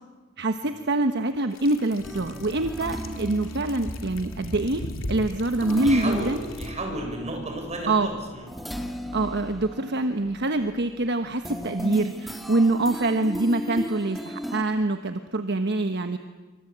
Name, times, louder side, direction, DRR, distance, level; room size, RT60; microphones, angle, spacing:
voice 1, 0.4-4.8 5.1-6.4 7.9-8.1 9.1-16.2, right 2 dB, 55° right, 8 dB, 1.2 m, -25 dB
sound 1, 1.5-6.7, left 1 dB, 75° left, 2.7 m, -38 dB
sound 2, 2.0-14.6, equal, ahead, 1.8 m, -37 dB
voice 2, 5.8-6.3 6.6-8.5, right 1 dB, 35° right, 2 dB, 7.3 m, -33 dB
26.5 x 25.0 x 8.7 m, 1.3 s
head